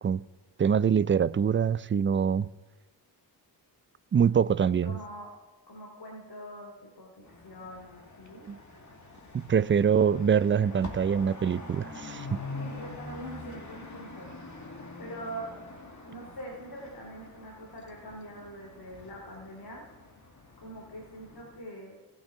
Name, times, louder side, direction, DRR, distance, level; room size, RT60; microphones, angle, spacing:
voice 1, 0.6-2.5 4.1-4.9 8.5-8.6 9.3-12.4, right 7 dB, 25° right, 0.4 m, -24 dB
voice 2, 4.7-5.3 5.7-8.5 12.5-14.6 15.0-15.5 16.1-19.8 20.6-22.0, right 1 dB, 50° left, 2.7 m, -43 dB
sound 1, 7.2-21.6, left 3 dB, 35° left, 2.0 m, -45 dB
19.0 x 6.4 x 3.7 m
supercardioid pair, 40°, 48 cm